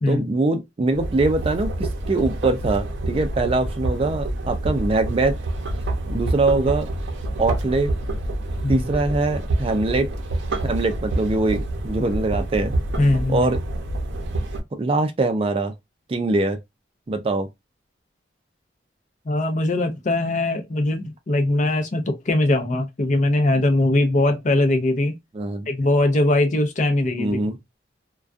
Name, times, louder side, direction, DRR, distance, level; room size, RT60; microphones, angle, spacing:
voice 1, 0.1-5.4 6.1-6.9 7.4-7.9 8.7-10.1 10.6-12.7 13.3-13.6 14.8-15.7 16.1-16.6 17.1-17.5 25.3-25.7 27.2-27.6, right 2 dB, 30° right, 0.3 m, -22 dB
sound 1, 0.9-14.6, right 1 dB, 75° right, 0.6 m, -27 dB
voice 2, 13.0-13.5 19.3-25.2 25.7-27.4, left 2 dB, 40° left, 0.5 m, -21 dB
2.3 x 2.2 x 2.4 m
head